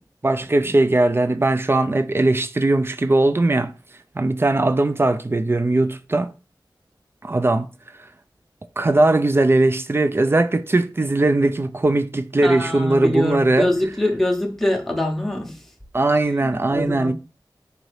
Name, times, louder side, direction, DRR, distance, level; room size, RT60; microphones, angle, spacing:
voice 1, 0.2-3.7 4.2-6.3 7.2-7.7 8.8-13.7 15.9-17.1, right 2 dB, 30° right, 0.3 m, -19 dB
voice 2, 12.4-15.6 16.3-17.1, left 1 dB, 5° left, 0.8 m, -24 dB
4.0 x 2.7 x 3.1 m
wide cardioid pair, 70°, 8 cm